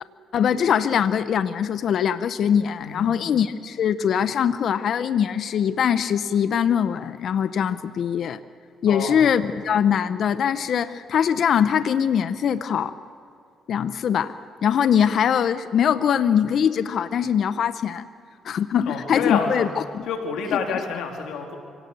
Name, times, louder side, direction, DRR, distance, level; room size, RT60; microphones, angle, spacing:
voice 1, 0.3-8.4 8.8-12.9 13.7-14.4 14.6-18.1 18.4-19.7 19.9-20.1, left 8 dB, 65° left, 13 dB, 0.8 m, -22 dB
voice 2, 2.8-3.1 8.9-9.2 18.9-19.7 20.1-21.6, left 6 dB, 85° left, 3 dB, 3.3 m, -28 dB
25.0 x 17.5 x 7.0 m, 2.4 s
cardioid pair, 90°, 0 cm